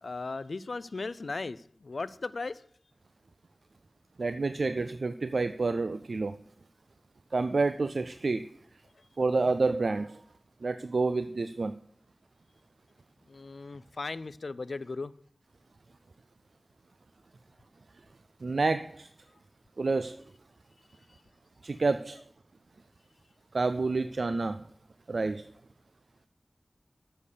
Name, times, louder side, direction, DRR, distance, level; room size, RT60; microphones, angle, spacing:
voice 1, 0.0-2.6 13.3-15.1, left 3 dB, 85° left, 16 dB, 0.4 m, -37 dB
voice 2, 4.2-6.4 7.3-8.5 9.2-10.2 10.6-11.7 18.4-19.1 19.8-20.2 21.6-22.2 23.5-24.6 25.1-25.5, right 3 dB, 80° right, 11 dB, 0.3 m, -28 dB
7.5 x 6.6 x 6.7 m, 0.65 s
wide cardioid pair, 65°, 0 cm